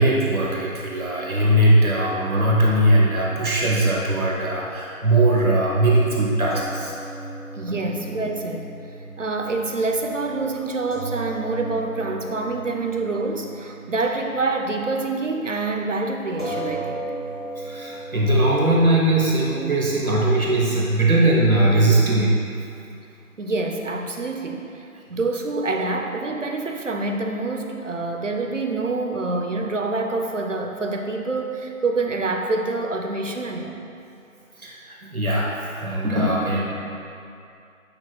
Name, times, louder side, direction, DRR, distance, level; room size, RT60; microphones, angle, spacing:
voice 1, 0.0-7.0 7.7-7.8 17.6-22.4 34.6-36.6, right 1 dB, 75° right, -4 dB, 1.2 m, -20 dB
sound 1, 6.5-15.0 15.3-15.5 16.4-22.9, right 2 dB, 35° left, 0.8 m, -37 dB
voice 2, 7.5-8.7 9.2-17.1 23.4-24.7 25.1-33.8, right 3 dB, 60° right, 3 dB, 0.7 m, -26 dB
8.7 x 6.0 x 2.3 m, 2.6 s
figure-of-eight pair, 170°, 42 cm